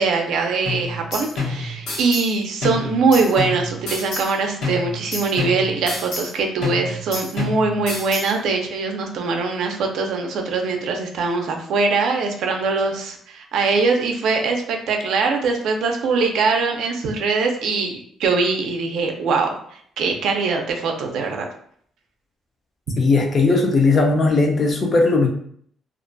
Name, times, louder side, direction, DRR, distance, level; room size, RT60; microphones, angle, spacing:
voice 1, 0.0-19.5 20.0-21.5, right 4 dB, 75° right, 3 dB, 0.4 m, -22 dB
sound 1, 0.7-2.3 2.6-4.3 4.6-6.3 6.6-8.3, left 3 dB, 85° left, 1.0 m, -28 dB
voice 2, 23.0-25.3, left 3 dB, 35° left, 2 dB, 0.4 m, -17 dB
2.4 x 2.1 x 2.6 m, 0.63 s
cardioid pair, 145°, 0 cm